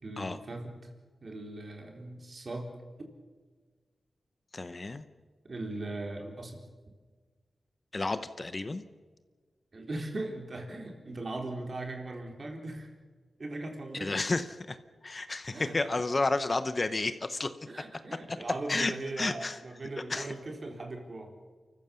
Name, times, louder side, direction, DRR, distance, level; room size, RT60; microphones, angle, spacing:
voice 1, 0.0-0.9 1.2-2.7 3.0-3.1 5.5-6.6 9.7-12.9 13.4-14.2 15.5-15.8 17.7-21.3, right 2 dB, 45° right, 2 dB, 3.9 m, -39 dB
voice 2, 4.5-5.0 7.9-8.8 14.0-14.8 15.0-17.5 18.1-18.4 18.7-19.6 20.1-20.3, left 2 dB, 35° left, 11 dB, 0.9 m, -31 dB
30.0 x 15.0 x 7.1 m, 1.4 s
wide cardioid pair, 120°, 0 cm